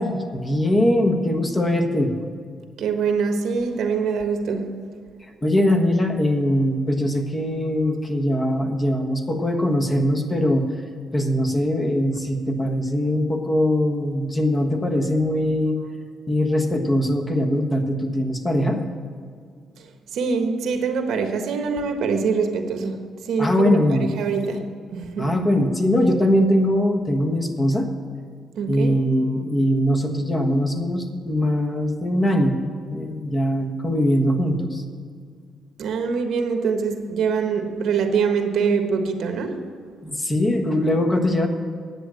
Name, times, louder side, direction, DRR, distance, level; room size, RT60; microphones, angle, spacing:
voice 1, 0.0-2.1 5.4-10.7 11.1-15.8 16.3-18.8 23.4-24.1 25.2-27.9 28.7-34.8 40.0-41.5, left 1 dB, 20° left, 4 dB, 1.4 m, -21 dB
voice 2, 2.8-4.7 20.1-25.3 28.6-29.0 35.8-39.6, right 5 dB, 75° right, 5 dB, 1.2 m, -24 dB
10.0 x 7.8 x 7.6 m, 2.1 s
cardioid pair, 90°, 0 cm